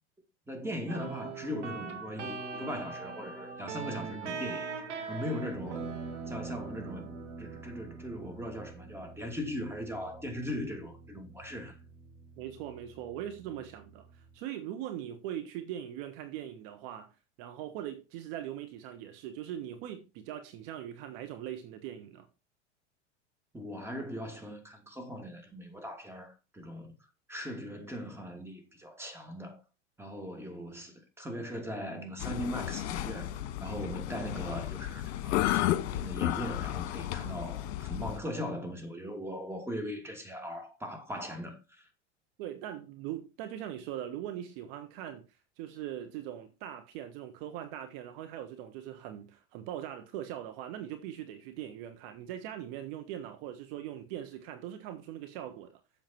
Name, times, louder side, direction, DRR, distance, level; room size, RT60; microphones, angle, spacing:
voice 1, 0.5-4.7 5.1-5.9 6.3-11.8 23.5-26.9 27.3-29.6 30.0-41.9, equal, 5° right, 2.8 m, -39 dB
sound 1, 0.9-14.4, right 5 dB, 75° right, 2.2 m, -43 dB
voice 2, 12.4-17.1 17.4-22.3 42.4-45.2 45.6-55.8, right 11 dB, 50° right, 1.3 m, -41 dB
sound 2, 32.2-38.2, left 13 dB, 55° left, 1.3 m, -33 dB
7.6 x 7.3 x 4.6 m
hypercardioid pair, 90°, 36 cm